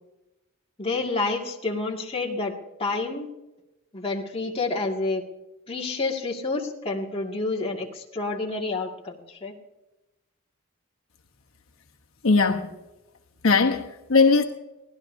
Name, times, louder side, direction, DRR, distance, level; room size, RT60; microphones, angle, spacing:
voice 1, 0.8-3.3 3.9-5.3 5.7-9.6, left 3 dB, 25° left, 2.1 m, -29 dB
voice 2, 12.2-12.7 13.4-14.4, left 4 dB, 75° left, 1.1 m, -19 dB
24.0 x 17.0 x 2.7 m
head